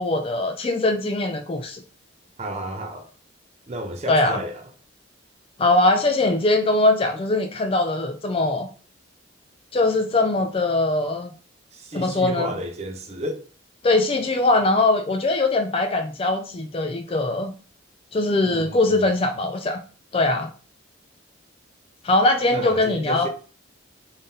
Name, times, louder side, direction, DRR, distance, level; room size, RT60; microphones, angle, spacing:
voice 1, 0.0-1.8 4.1-4.4 5.6-8.7 9.7-11.3 11.9-12.6 13.8-17.5 18.1-19.8 20.1-20.5 22.0-23.3, left 2 dB, 25° left, 0.3 m, -21 dB
voice 2, 2.4-3.1 3.7-4.6 11.7-13.4 18.5-19.0 22.5-23.3, right 1 dB, 30° right, 0.5 m, -32 dB
3.7 x 2.7 x 3.4 m
head